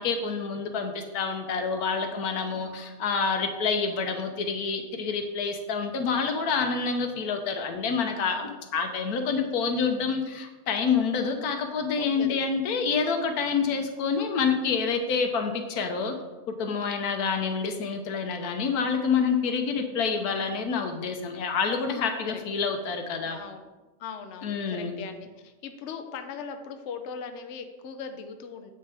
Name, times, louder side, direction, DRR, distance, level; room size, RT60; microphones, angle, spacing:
voice 1, 0.0-16.1 16.5-23.4 24.4-24.9, left 5 dB, 85° left, 6 dB, 1.3 m, -27 dB
voice 2, 8.2-8.6 9.6-9.8 12.0-12.4 13.5-13.8 16.7-17.0 19.7-19.9 22.2-22.4 23.2-23.7 24.0-28.7, left 6 dB, 60° left, 7 dB, 0.9 m, -40 dB
7.9 x 6.4 x 3.4 m, 1.2 s
omnidirectional pair, 1.6 m